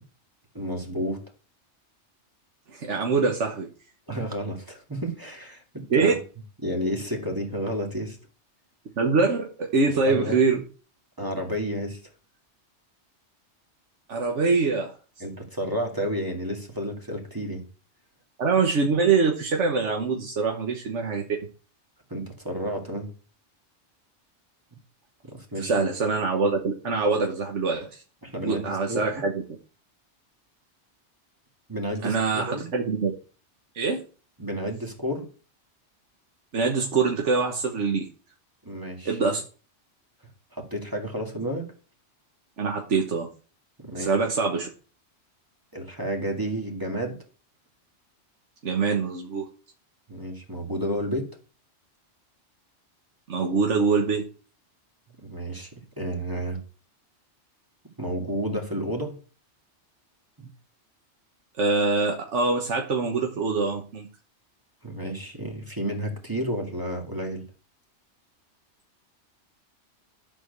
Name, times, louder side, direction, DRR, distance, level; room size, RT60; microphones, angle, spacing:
voice 1, 0.5-1.2 4.1-6.2 6.6-8.2 9.9-10.4 11.2-12.1 15.2-17.7 22.1-23.1 25.2-25.9 28.2-29.2 31.7-32.7 34.4-35.3 38.6-39.2 40.5-41.7 43.8-44.1 45.7-47.2 50.1-51.3 55.2-56.6 58.0-59.2 60.4-60.5 64.8-67.4, equal, 20° right, 2 dB, 2.1 m, -31 dB
voice 2, 2.7-3.7 5.9-6.1 9.0-10.6 14.1-14.9 18.4-21.2 25.6-28.0 28.4-29.3 32.0-33.1 33.7-34.0 36.5-38.1 39.0-39.4 42.6-43.3 44.0-44.7 48.6-49.5 53.3-54.2 61.6-64.1, right 4 dB, 90° right, 2 dB, 1.5 m, -24 dB
11.0 x 4.4 x 6.6 m, 0.38 s
omnidirectional pair, 1.2 m